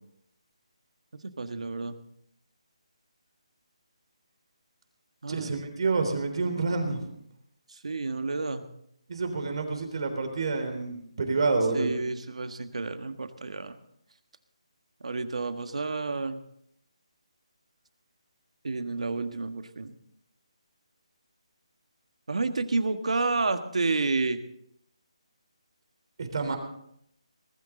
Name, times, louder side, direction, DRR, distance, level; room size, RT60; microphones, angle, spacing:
voice 1, 1.2-2.0 5.2-5.5 7.7-8.7 11.7-13.8 15.0-16.4 18.6-20.0 22.3-24.4, right 3 dB, 70° right, 8 dB, 1.6 m, -30 dB
voice 2, 5.3-7.1 9.1-11.9 26.2-26.6, right 3 dB, 50° right, 5 dB, 3.6 m, -28 dB
20.0 x 13.0 x 3.8 m, 0.72 s
figure-of-eight pair, 165°, 4 cm